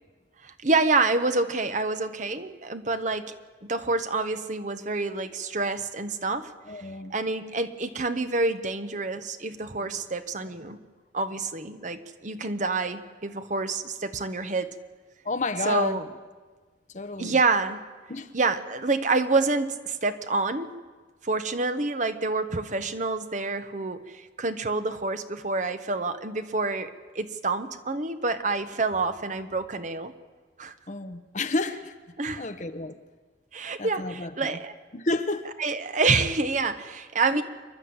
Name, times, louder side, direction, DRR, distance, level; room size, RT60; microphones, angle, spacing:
voice 1, 0.4-3.3 3.6-6.5 7.1-10.8 11.1-14.8 15.6-16.0 17.2-17.8 18.3-20.7 21.2-30.1 30.6-30.7 32.2-32.5 33.5-34.7 35.6-37.4, right 3 dB, 40° right, 1.0 m, -27 dB
voice 2, 6.7-7.1 10.7-10.8 15.2-16.0 16.9-17.4 18.1-18.3 30.9-31.9 32.4-33.0 33.8-34.6 34.9-35.5 37.3-37.4, left 2 dB, 40° left, 1.0 m, -31 dB
28.0 x 11.5 x 8.8 m
head